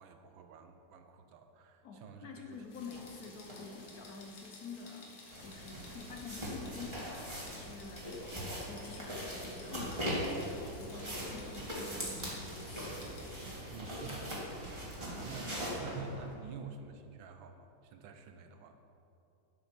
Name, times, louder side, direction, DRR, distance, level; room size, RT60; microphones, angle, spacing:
voice 1, 0.0-2.6 13.7-14.5 15.0-18.8, right 4 dB, 85° right, 7 dB, 1.6 m, -48 dB
voice 2, 1.8-5.1 5.4-13.0, left 5 dB, 60° left, 3 dB, 1.1 m, -48 dB
sound 1, 2.7-13.5, left 2 dB, 90° left, 2.3 m, -55 dB
sound 2, 2.9-3.0 3.5-3.6 5.3-15.7, equal, 15° right, 2.4 m, -41 dB
sound 3, 9.5-16.3, right 2 dB, 35° right, 2.1 m, -48 dB
8.5 x 8.4 x 6.0 m, 2.8 s
omnidirectional pair, 2.1 m